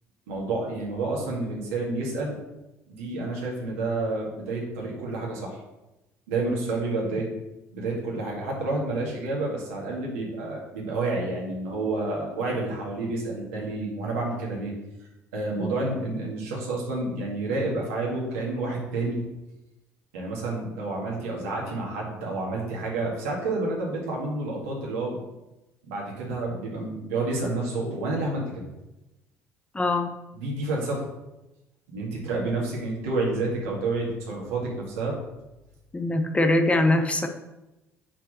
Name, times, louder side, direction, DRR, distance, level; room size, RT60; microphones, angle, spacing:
voice 1, 0.3-2.4 2.9-5.6 6.3-7.3 7.7-14.7 15.3-19.2 20.1-25.2 25.9-28.6 30.3-31.0 31.9-35.1, right 2 dB, 70° right, -3 dB, 2.1 m, -29 dB
voice 2, 29.7-30.1 35.9-37.3, left 2 dB, 15° left, 6 dB, 0.8 m, -22 dB
6.1 x 4.5 x 6.5 m, 0.98 s
figure-of-eight pair, 55°, 8 cm